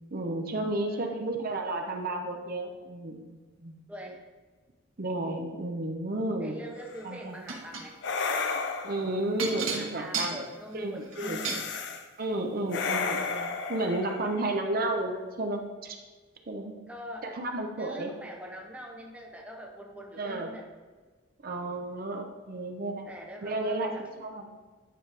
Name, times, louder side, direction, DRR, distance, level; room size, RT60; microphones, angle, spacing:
voice 1, 0.1-3.8 5.0-6.6 7.0-7.4 8.8-10.4 10.7-11.4 12.2-16.0 16.5-16.7 17.2-18.1 20.2-20.5 21.4-23.1 23.4-24.5, right 2 dB, 45° right, 3 dB, 0.7 m, -32 dB
voice 2, 0.9-1.3 3.9-4.2 6.4-8.0 9.7-11.7 16.9-17.3 17.8-20.6 23.1-24.1, equal, 5° right, 0 dB, 0.7 m, -43 dB
sound 1, 6.8-7.1 8.0-9.2 11.1-12.0 12.7-14.9, left 4 dB, 60° left, 0.6 m, -33 dB
sound 2, 7.5-7.9 9.4-11.7 12.6-12.8 13.2-13.3, right 5 dB, 85° right, 1.3 m, -33 dB
9.9 x 5.2 x 3.4 m, 1.3 s
head